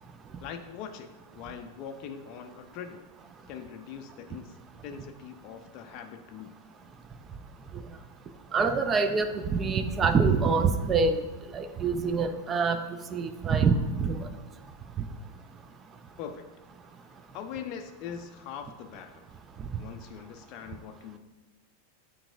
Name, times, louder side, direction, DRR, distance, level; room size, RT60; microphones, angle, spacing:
voice 1, 0.4-3.1 3.5-4.6 4.8-6.5 16.2-16.5 17.3-19.2 19.8-21.2, left 7 dB, 40° left, 6 dB, 0.4 m, -42 dB
voice 2, 8.5-11.2 11.5-12.8 13.1-14.3, right 5 dB, 25° right, 8 dB, 0.5 m, -25 dB
8.7 x 4.6 x 2.6 m, 1.2 s
figure-of-eight pair, 90°, 0 cm